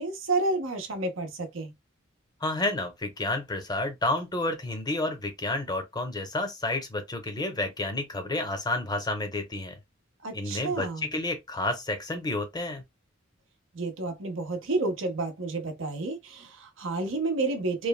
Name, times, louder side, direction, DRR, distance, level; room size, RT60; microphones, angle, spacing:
voice 1, 0.0-1.7 10.2-11.1 13.7-17.9, right 2 dB, 75° right, 0.7 m, -30 dB
voice 2, 2.4-9.8 10.3-12.8, left 2 dB, 20° left, 0.6 m, -30 dB
3.1 x 2.2 x 2.2 m
head